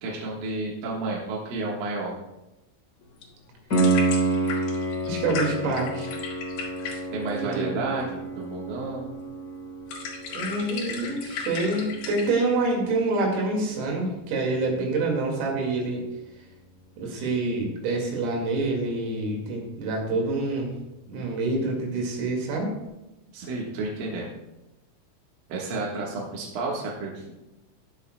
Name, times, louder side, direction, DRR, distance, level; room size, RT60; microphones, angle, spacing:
voice 1, 0.0-2.1 7.1-9.1 23.3-24.3 25.5-27.3, right 3 dB, 65° right, -3 dB, 2.3 m, -31 dB
sound 1, 3.0-12.3, left 5 dB, 65° left, 2.8 m, -37 dB
Piano, 3.7-14.4 17.7-17.8, right 3 dB, 25° left, 2.9 m, -30 dB
voice 2, 5.1-6.1 7.4-7.9 10.3-16.0 17.0-20.7 21.1-22.7, right 2 dB, 85° right, 0 dB, 4.8 m, -27 dB
20.5 x 7.1 x 2.2 m, 0.96 s
omnidirectional pair, 5.9 m